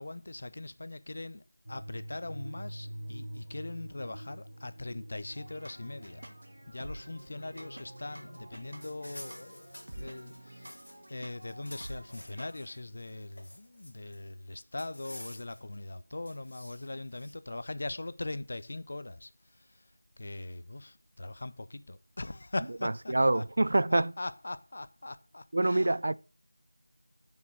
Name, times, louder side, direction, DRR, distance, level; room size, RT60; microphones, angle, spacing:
voice 1, 0.0-6.4 6.7-10.8 11.1-19.8 20.2-23.4 23.9-25.9, left 2 dB, 40° left, 0.6 m, -41 dB
sound 1, 1.6-10.7, right 1 dB, 90° right, 1.5 m, -47 dB
sound 2, 5.4-12.8, right 1 dB, 65° right, 2.1 m, -49 dB
sound 3, 8.8-11.1 11.4-12.6 13.0-14.2 14.8-15.7 16.3-17.3, left 1 dB, 80° left, 2.6 m, -50 dB
voice 2, 22.8-24.1 25.5-26.1, right 2 dB, 45° right, 0.4 m, -26 dB
6.7 x 5.3 x 6.2 m
figure-of-eight pair, 175°, 0 cm